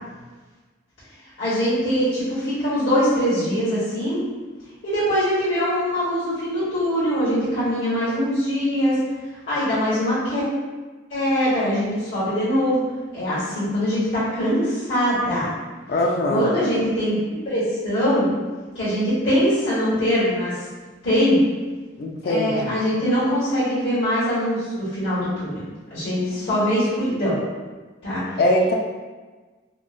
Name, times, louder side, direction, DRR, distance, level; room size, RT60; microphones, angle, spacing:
voice 1, 1.4-4.2 4.8-9.0 9.5-10.4 11.1-12.8 13.1-15.5 16.3-17.2 17.4-18.3 18.7-20.5 21.0-21.4 22.2-25.5 25.9-27.4 28.0-28.2, equal, 70° left, -13 dB, 1.3 m, -22 dB
voice 2, 15.9-16.5 22.0-22.8 28.4-28.7, left 1 dB, 50° left, -1 dB, 0.4 m, -21 dB
4.5 x 2.1 x 2.5 m, 1.3 s
head